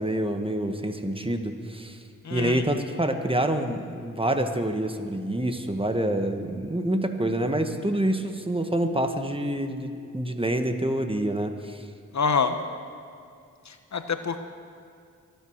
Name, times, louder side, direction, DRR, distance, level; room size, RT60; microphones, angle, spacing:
voice 1, 0.0-2.0 2.3-11.8, right 1 dB, 15° right, 6 dB, 1.6 m, -27 dB
voice 2, 2.2-2.6 12.1-12.6 13.7-14.4, left 5 dB, 60° left, 8 dB, 1.1 m, -26 dB
24.0 x 9.2 x 6.6 m, 2.4 s
cardioid pair, 45°, 32 cm